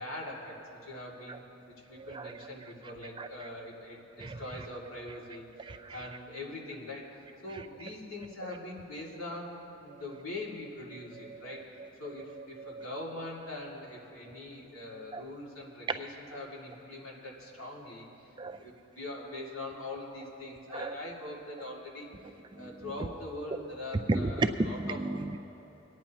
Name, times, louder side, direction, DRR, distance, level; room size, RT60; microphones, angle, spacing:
voice 1, 0.0-1.4 1.9-7.1 7.4-11.7 12.0-18.3 18.6-22.1 22.6-25.0, left 2 dB, 80° left, 2.5 m, -42 dB
voice 2, 2.0-2.7 3.2-3.5 4.2-4.4 5.6-6.2 7.5-7.6 8.4-8.6 9.9-10.0 11.1-11.9 12.3-12.8 15.1-15.2 15.9-16.0 18.4-18.6 20.7-21.0 22.5-22.9 24.1-25.4, right 2 dB, 20° right, 0.3 m, -35 dB
25.5 x 9.3 x 3.0 m
head